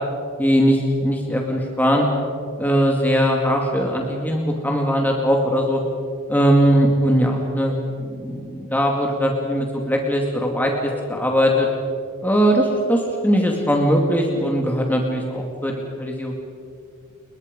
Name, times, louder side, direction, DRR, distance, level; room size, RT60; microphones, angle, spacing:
voice 1, 0.4-2.1 2.6-5.8 6.3-11.7 12.2-15.7 16.0-16.3, equal, 10° left, 0 dB, 2.3 m, -20 dB
29.5 x 21.5 x 5.3 m, 2.3 s
head